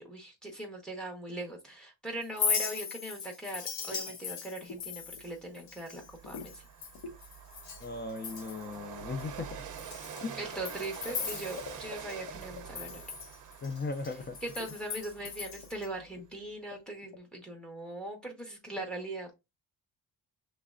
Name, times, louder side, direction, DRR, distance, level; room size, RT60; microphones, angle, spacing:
voice 1, 0.0-6.6 10.4-13.0 14.4-19.3, right 1 dB, ahead, 1.1 m, -40 dB
Chink clink, 2.2-7.9 8.2-8.8 9.2-9.3 9.8-12.1 12.4-15.9, left 6 dB, 85° left, 1.0 m, -38 dB
sound 1, 3.7-4.1 4.4-4.9 5.2-5.6 5.9-6.6 6.9-7.2 8.6-12.0 12.3-12.6 14.2-14.3 14.5-14.8 15.2-15.3 15.6-15.7 16.0-16.3 16.7-17.2, left 5 dB, 60° left, 0.9 m, -46 dB
Train, 5.2-5.3 5.7-16.1, right 8 dB, 45° right, 0.6 m, -46 dB
voice 2, 7.8-9.7 10.2-10.4 13.6-14.4, left 3 dB, 25° left, 0.3 m, -37 dB
5.7 x 3.2 x 2.4 m
cardioid pair, 170°, 44 cm